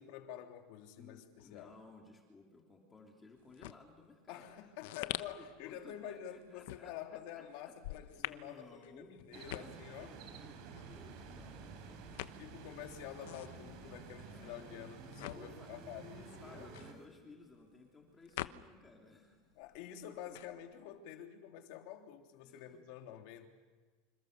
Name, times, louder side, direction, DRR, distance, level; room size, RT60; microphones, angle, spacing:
voice 1, 0.0-1.7 4.3-10.1 12.4-16.7 19.6-23.5, left 10 dB, 55° left, 4 dB, 3.2 m, -48 dB
voice 2, 1.0-6.9 7.3-9.7 10.0-12.2 12.8-13.0 14.3-14.9 15.3-15.7 16.4-19.4 20.0-20.4 22.4-22.8, left 3 dB, 10° left, 1 dB, 3.2 m, -58 dB
sound 1, 3.4-19.1 19.4-21.0, left 15 dB, 70° left, 1.0 m, -47 dB
sound 2, 9.3-16.9, right 6 dB, 50° right, 5.1 m, -52 dB
sound 3, 10.9-17.1, right 1 dB, 15° right, 6.1 m, -57 dB
28.0 x 27.0 x 6.7 m, 1.4 s
supercardioid pair, 175°, 0 cm